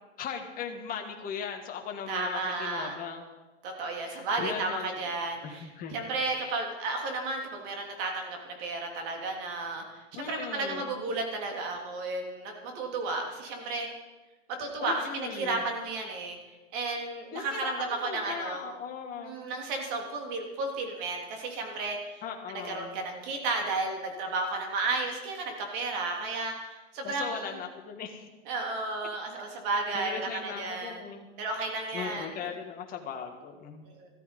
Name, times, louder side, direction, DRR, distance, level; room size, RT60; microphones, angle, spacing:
voice 1, 0.2-3.3 4.1-5.1 5.4-6.0 6.4-6.6 10.2-10.9 14.8-15.6 17.3-19.4 22.2-23.0 27.0-28.3 29.9-31.3 31.9-33.8, left 7 dB, 25° left, 3 dB, 1.8 m, -38 dB
voice 2, 2.1-2.9 3.6-13.9 14.6-16.4 16.7-18.6 19.2-22.2 22.5-27.5 28.5-31.0 31.4-32.3 33.8-34.1, right 3 dB, 45° right, 2 dB, 3.3 m, -33 dB
14.0 x 13.5 x 5.4 m, 1.2 s
hypercardioid pair, 145°, 37 cm